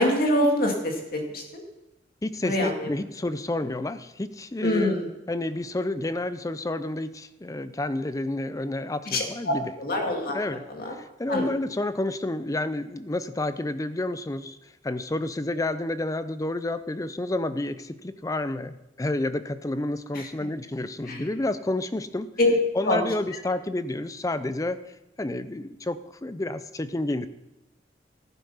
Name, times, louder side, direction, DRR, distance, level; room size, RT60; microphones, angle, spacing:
voice 1, 0.0-1.6 2.4-2.9 4.6-5.1 9.1-10.4 10.7-10.9 11.3-11.5 20.1-20.3 21.1-21.2 22.4-22.5 22.8-23.0, left 1 dB, 55° left, 1 dB, 2.3 m, -25 dB
voice 2, 2.2-4.9 5.3-9.7 10.3-10.6 11.0-14.6 14.8-22.3 22.7-24.8 25.2-27.3, left 2 dB, 20° left, 13 dB, 0.5 m, -30 dB
14.5 x 8.2 x 5.6 m, 0.98 s
head